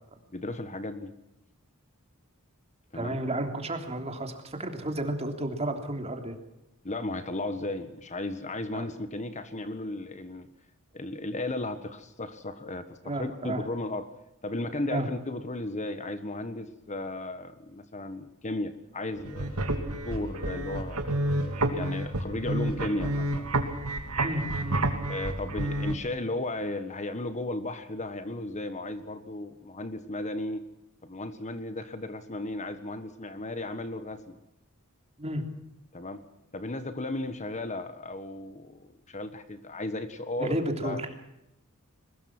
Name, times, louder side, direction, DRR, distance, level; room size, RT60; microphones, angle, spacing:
voice 1, 0.3-1.1 2.9-3.2 6.8-10.5 10.9-14.1 14.4-19.6 20.0-21.0 21.4-23.5 24.4-24.5 25.1-30.6 31.0-34.4 35.9-36.2 36.5-41.0, left 2 dB, 35° left, 10 dB, 1.5 m, -35 dB
voice 2, 2.9-6.4 8.7-8.9 13.0-13.6 14.9-15.1 24.2-24.8 35.2-35.5 40.4-41.1, right 1 dB, 30° right, 5 dB, 3.3 m, -32 dB
sound 1, 19.2-25.9, right 1 dB, 80° right, 2.9 m, -30 dB
22.5 x 20.5 x 6.2 m, 0.88 s
head